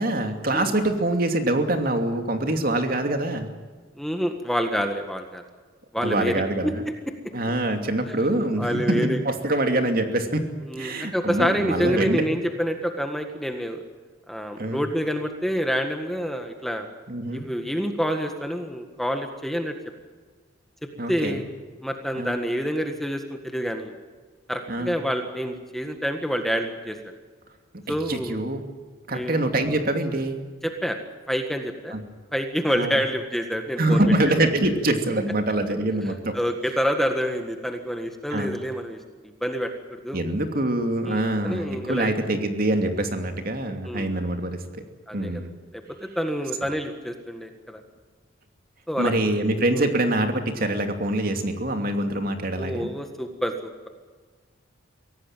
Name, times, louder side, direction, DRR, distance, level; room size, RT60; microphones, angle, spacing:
voice 1, 0.0-3.5 6.0-6.8 7.3-10.5 10.8-12.2 14.6-14.8 17.1-17.4 21.0-21.4 22.2-22.4 24.7-25.0 27.9-28.6 29.1-30.4 31.9-32.0 32.7-33.0 33.8-36.4 38.3-38.5 40.1-44.8 45.1-45.5 49.0-52.9, right 1 dB, 45° right, 5 dB, 2.7 m, -25 dB
voice 2, 3.9-5.4 5.9-6.9 8.6-9.2 10.7-13.8 14.3-16.9 17.3-19.7 21.1-21.4 21.8-24.0 24.5-27.0 27.9-28.4 29.1-29.3 30.6-31.0 31.3-32.0 32.3-34.0 36.3-39.0 39.4-40.2 41.1-42.1 43.8-44.1 45.1-45.4 45.7-47.8 48.9-49.1 49.7-49.9 52.5-53.9, equal, ahead, 5 dB, 1.6 m, -27 dB
23.5 x 17.5 x 9.1 m, 1.4 s
head